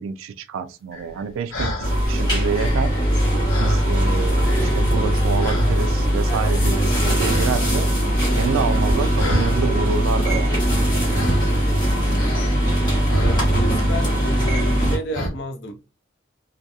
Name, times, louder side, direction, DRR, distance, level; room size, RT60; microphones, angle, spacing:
voice 1, 0.0-2.9 3.6-7.9 8.4-10.7, right 6 dB, 80° right, 0.3 m, -28 dB
sound 1, 0.9-1.9 2.4-4.2 4.4-5.0 5.4-5.8 6.3-7.0 7.3-7.6 7.8-9.6 11.1-11.6 12.1-13.8 14.1-14.5 15.1-15.3, equal, 85° left, 1.0 m, -29 dB
sound 2, 1.8-15.0, equal, 25° left, 1.2 m, -20 dB
voice 2, 11.6-12.5 13.2-15.8, left 1 dB, 65° left, 0.6 m, -33 dB
2.7 x 2.2 x 2.3 m
head